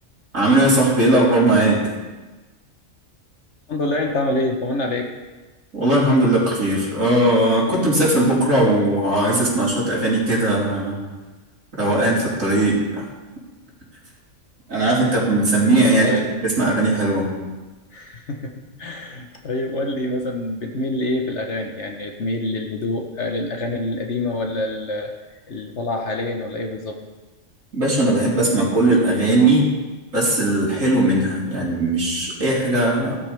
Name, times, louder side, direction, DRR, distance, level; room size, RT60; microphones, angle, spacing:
voice 1, 0.3-1.9 5.7-11.0 11.7-13.1 14.7-17.3 27.7-29.7 30.1-33.2, right 1 dB, 75° right, -6 dB, 4.6 m, -18 dB
voice 2, 3.7-5.1 16.0-16.3 17.9-18.5 18.8-25.1 25.5-27.0, left 2 dB, 60° left, 3 dB, 1.4 m, -26 dB
18.0 x 13.0 x 3.5 m, 1.2 s
omnidirectional pair, 1.4 m